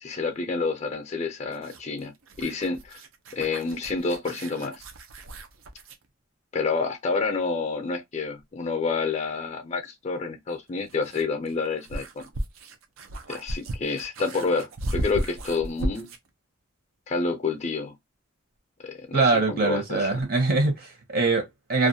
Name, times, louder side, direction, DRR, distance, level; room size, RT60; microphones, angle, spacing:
voice 1, 0.0-3.0 3.3-4.8 6.5-12.2 13.3-16.1 17.1-17.9 18.8-20.2, left 4 dB, 35° left, 0.4 m, -29 dB
sound 1, 1.5-6.1 8.4-8.5 10.5-16.3, right 1 dB, 85° right, 0.5 m, -35 dB
voice 2, 19.1-21.9, right 3 dB, 50° right, 0.8 m, -23 dB
2.4 x 2.2 x 2.6 m
head